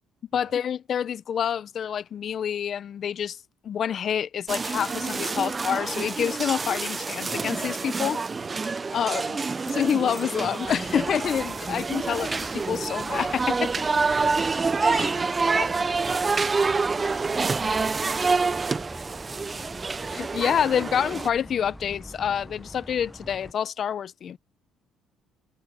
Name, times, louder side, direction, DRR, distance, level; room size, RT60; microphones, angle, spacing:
voice 1, 0.3-3.4 3.6-8.2 8.9-9.4 9.7-13.7 14.8-15.1 15.5-15.6 20.1-24.4, left 8 dB, 55° left, 0.8 m, -27 dB
sound 1, 4.5-21.3, right 4 dB, 30° right, 0.7 m, -27 dB
sound 2, 10.6-23.5, equal, ahead, 1.2 m, -44 dB
voice 2, 14.0-14.4 14.9-18.8, right 9 dB, 55° right, 6.0 m, -49 dB
supercardioid pair, 85°, 0 cm